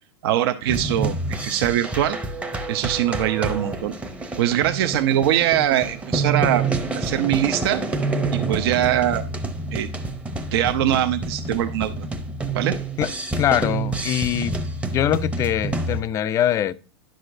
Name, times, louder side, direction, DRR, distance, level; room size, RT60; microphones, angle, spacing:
voice 1, 0.2-2.2 2.7-3.9 4.4-7.8 8.3-9.2 9.7-9.9 10.5-12.1 12.5-12.8, right 12 dB, 65° right, 0.6 m, -22 dB
sound 1, 0.7-16.0, right 3 dB, 10° right, 0.7 m, -28 dB
voice 2, 13.4-14.5 14.8-16.7, left 11 dB, 20° left, 0.3 m, -23 dB
10.5 x 6.3 x 2.5 m
supercardioid pair, 145°, 14 cm